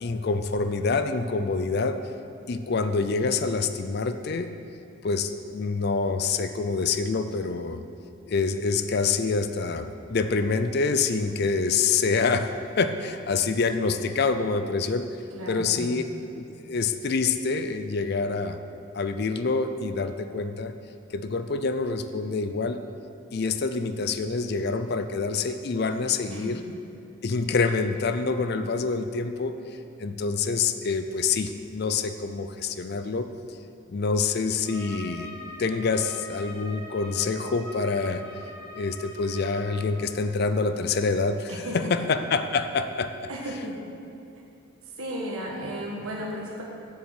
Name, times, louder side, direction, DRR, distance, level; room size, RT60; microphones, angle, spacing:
voice 1, 0.0-2.0 2.5-4.5 5.0-7.8 8.3-12.5 12.8-15.1 15.5-16.0 16.3-18.6 18.9-20.7 21.1-22.8 23.3-26.6 27.2-29.5 30.0-33.3 33.9-35.3 35.6-38.2 38.7-43.1, left 4 dB, 50° left, 9 dB, 0.4 m, -26 dB
voice 2, 15.3-16.0 26.3-26.7 41.5-41.8 43.3-43.8 45.0-46.6, equal, 90° right, -2 dB, 1.5 m, -35 dB
Trumpet, 34.6-39.9, equal, 5° left, 2.0 m, -43 dB
7.3 x 7.3 x 7.9 m, 2.7 s
head